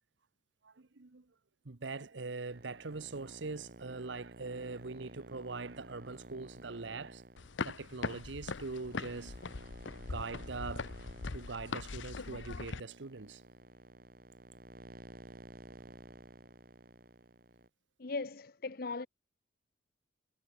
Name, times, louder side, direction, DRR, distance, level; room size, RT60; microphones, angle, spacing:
voice 1, 0.6-1.2 1.6-7.2 7.6-9.4 10.0-10.9 11.3-13.4, right 3 dB, 75° right, 1.0 m, -42 dB
sound 1, 2.5-17.7, right 1 dB, 50° right, 4.9 m, -53 dB
sound 2, 7.4-12.8, left 4 dB, 80° left, 0.8 m, -41 dB
voice 2, 18.0-19.1, left 3 dB, 50° left, 0.8 m, -38 dB
head